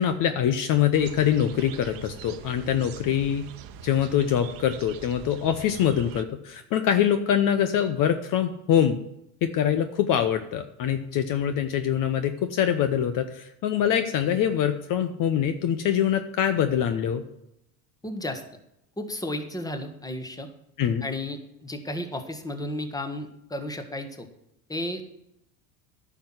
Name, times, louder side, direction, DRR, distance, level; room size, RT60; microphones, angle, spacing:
voice 1, 0.0-3.4 3.8-9.0 9.4-17.2 20.8-21.0, left 9 dB, 45° left, 9 dB, 0.9 m, -24 dB
sound 1, 0.9-6.2, right 8 dB, 50° right, 1.0 m, -43 dB
voice 2, 18.0-18.4 19.0-20.5 21.0-24.3 24.7-25.0, left 1 dB, 10° left, 7 dB, 1.5 m, -33 dB
10.0 x 6.0 x 7.7 m, 0.83 s
hypercardioid pair, 80°, 45 cm